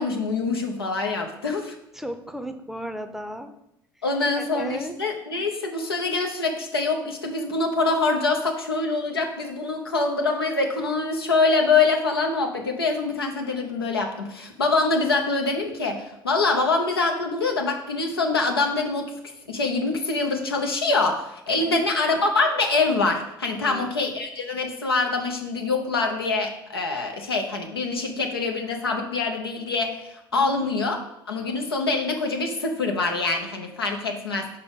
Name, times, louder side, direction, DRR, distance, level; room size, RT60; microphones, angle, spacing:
voice 1, 0.0-1.7 4.0-19.1 19.5-31.0 31.3-34.6, left 3 dB, 85° left, 3 dB, 0.8 m, -25 dB
voice 2, 1.9-3.5 4.4-5.0 21.6-21.9 23.5-24.0 30.3-30.7, right 1 dB, 5° right, 8 dB, 0.6 m, -35 dB
5.6 x 4.1 x 5.3 m, 0.82 s
figure-of-eight pair, 65°, 12 cm